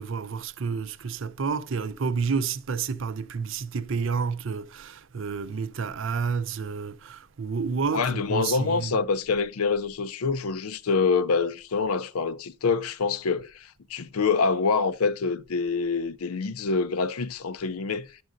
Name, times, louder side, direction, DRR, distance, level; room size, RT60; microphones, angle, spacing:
voice 1, 0.0-9.0, right 5 dB, 60° right, 0.5 m, -30 dB
voice 2, 7.9-18.1, left 4 dB, 90° left, 0.5 m, -26 dB
10.5 x 7.5 x 2.5 m
head